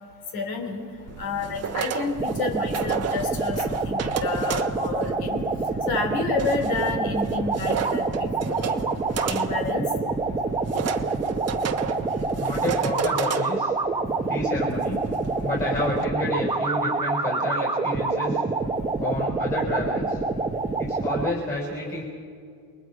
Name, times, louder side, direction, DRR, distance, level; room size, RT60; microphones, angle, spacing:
voice 1, 0.3-0.8 1.2-3.6 3.8-5.4 5.9-8.8 9.3-9.8, left 4 dB, 65° left, 4 dB, 3.1 m, -30 dB
sound 1, 1.1-16.1, right 8 dB, 40° right, 1.2 m, -34 dB
sound 2, 2.2-21.3, right 3 dB, 10° right, 1.1 m, -27 dB
voice 2, 12.4-13.7 14.3-15.0 15.4-18.4 19.0-20.2 20.8-22.0, left 2 dB, 20° left, -3 dB, 4.9 m, -30 dB
29.0 x 22.5 x 4.8 m, 2.3 s
cardioid pair, 155°, 40 cm